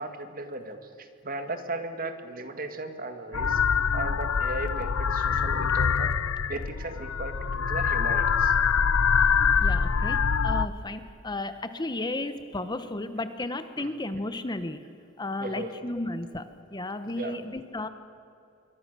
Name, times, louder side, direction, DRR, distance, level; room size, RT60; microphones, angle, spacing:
voice 1, 0.0-3.6 3.9-6.1 6.5-8.5 13.8-13.9 15.4-15.7 17.1-17.5, right 2 dB, 45° right, 7 dB, 2.0 m, -36 dB
sound 1, 3.3-10.7, left 6 dB, 90° left, 0.6 m, -24 dB
voice 2, 9.6-14.8 15.2-17.9, left 2 dB, 20° left, 10 dB, 0.9 m, -34 dB
26.0 x 23.5 x 6.8 m, 2.5 s
head